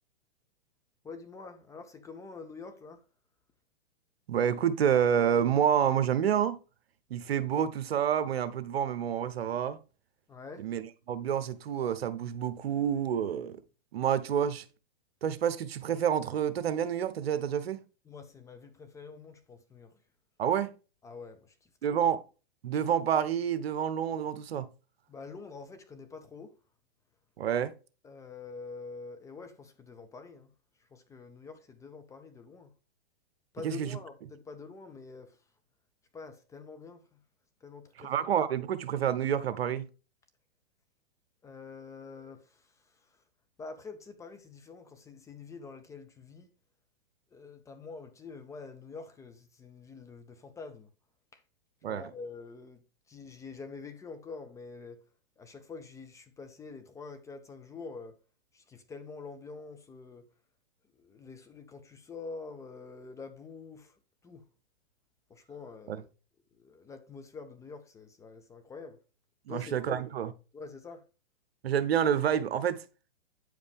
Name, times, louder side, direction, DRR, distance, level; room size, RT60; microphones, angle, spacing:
voice 1, 1.0-3.0 10.3-10.7 18.1-20.0 21.0-22.0 25.1-26.5 28.0-30.5 30.8-32.7 33.5-35.4 36.1-37.2 37.6-38.3 41.4-43.2 43.6-46.5 47.3-50.9 51.3-51.4 51.9-55.0 55.4-58.2 58.5-60.3 61.0-64.0 64.2-64.4 65.3-66.1 66.5-69.0 69.5-70.1 70.5-71.0, left 4 dB, 10° left, 0.5 m, -46 dB
voice 2, 4.3-6.6 7.1-9.8 10.6-13.6 13.9-14.6 15.2-17.8 20.4-20.7 21.8-22.2 22.6-24.7 27.4-27.7 33.6-33.9 38.0-39.8 51.8-52.0 65.9-66.0 69.5-70.3 71.6-72.8, right 9 dB, 70° right, 0.9 m, -28 dB
9.0 x 5.1 x 3.5 m
hypercardioid pair, 125°, 31 cm